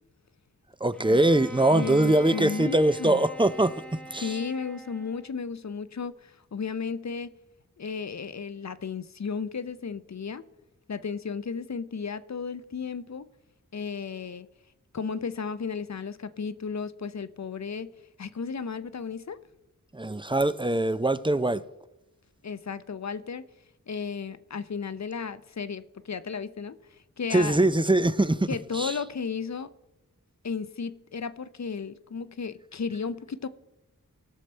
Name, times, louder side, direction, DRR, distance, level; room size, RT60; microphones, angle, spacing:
voice 1, 0.8-3.7 4.1-4.3 19.9-21.6 27.3-28.5 28.7-28.9, right 1 dB, 15° right, 0.4 m, -22 dB
Bowed string instrument, 0.9-5.4, right 1 dB, 5° left, 0.8 m, -43 dB
voice 2, 1.7-3.3 4.2-7.4 7.8-10.4 10.9-13.3 13.7-14.5 14.9-19.4 22.4-23.4 23.9-26.8 27.2-27.7 28.5-29.7 30.4-33.5, left 5 dB, 55° left, 0.6 m, -34 dB
17.5 x 6.5 x 4.4 m
wide cardioid pair, 45°, 34 cm